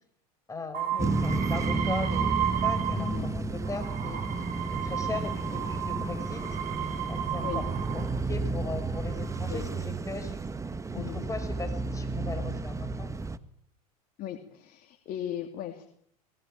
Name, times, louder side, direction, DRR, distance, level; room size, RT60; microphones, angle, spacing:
voice 1, 0.5-4.2 4.8-6.4 7.1-7.6 7.9-10.4 10.9-13.1, left 4 dB, 15° left, 7 dB, 5.5 m, -38 dB
sound 1, 0.7-3.3 3.6-8.2 8.9-9.5, right 10 dB, 45° right, 3.6 m, -33 dB
sound 2, 1.0-13.4, right 3 dB, 15° right, 1.4 m, -32 dB
voice 2, 3.0-3.3 7.4-7.6 9.5-9.7 10.9-11.2 14.2-15.9, left 12 dB, 45° left, 4 dB, 2.9 m, -37 dB
21.0 x 20.5 x 9.0 m, 0.69 s
hypercardioid pair, 95°, 20 cm